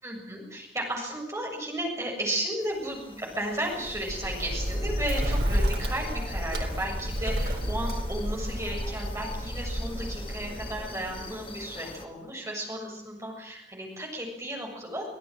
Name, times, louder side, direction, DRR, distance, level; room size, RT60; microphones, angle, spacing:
voice 1, 0.0-15.1, right 1 dB, 15° right, 0 dB, 7.3 m, -34 dB
sound 1, 2.6-12.1, left 2 dB, 30° left, 2.2 m, -44 dB
Bird, 3.8-11.6, equal, 60° right, 3.7 m, -31 dB
25.5 x 16.5 x 9.0 m, 0.77 s
head